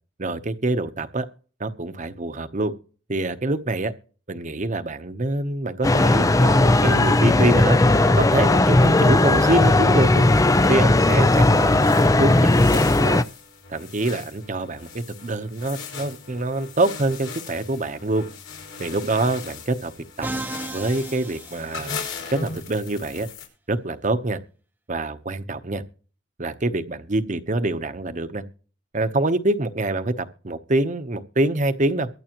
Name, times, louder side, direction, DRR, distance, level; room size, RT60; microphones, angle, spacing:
voice 1, 0.2-1.3 1.6-2.7 3.1-3.9 4.3-7.8 8.1-10.3 10.7-13.2 13.7-18.3 18.8-19.9 20.2-20.3 20.7-22.0 22.3-23.3 23.7-24.4 24.9-25.8 26.4-28.4 28.9-32.1, right 2 dB, 40° right, 0.9 m, -25 dB
sound 1, 5.8-13.2, left 2 dB, 15° left, 0.4 m, -17 dB
sound 2, 11.2-23.5, left 5 dB, 80° left, 4.8 m, -38 dB
Musical instrument, 20.2-22.3, right 2 dB, 10° right, 0.8 m, -34 dB
23.5 x 8.2 x 3.0 m
head